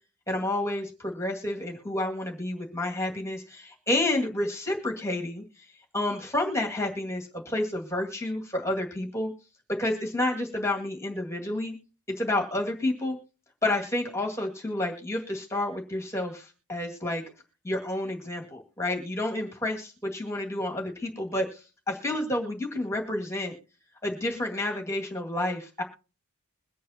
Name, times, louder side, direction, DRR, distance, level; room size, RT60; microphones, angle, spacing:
voice 1, 0.3-5.4 5.9-9.3 9.8-11.8 12.2-13.2 13.6-17.2 17.6-23.5 24.0-25.8, left 1 dB, 15° left, 1 dB, 2.0 m, -30 dB
22.5 x 8.5 x 2.8 m, 0.35 s
head